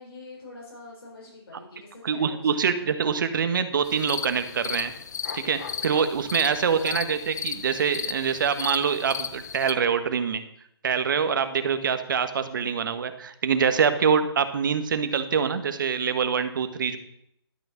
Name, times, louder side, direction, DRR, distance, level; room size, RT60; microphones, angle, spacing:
voice 1, 0.0-2.7 6.5-7.1, left 3 dB, 60° left, -4 dB, 4.2 m, -45 dB
voice 2, 2.0-4.9 5.3-10.4 10.8-17.0, right 6 dB, 50° right, 9 dB, 1.3 m, -25 dB
sound 1, 3.8-9.7, left 7 dB, 40° left, 0.6 m, -35 dB
12.0 x 6.0 x 7.1 m, 0.74 s
hypercardioid pair, 165°, 14 cm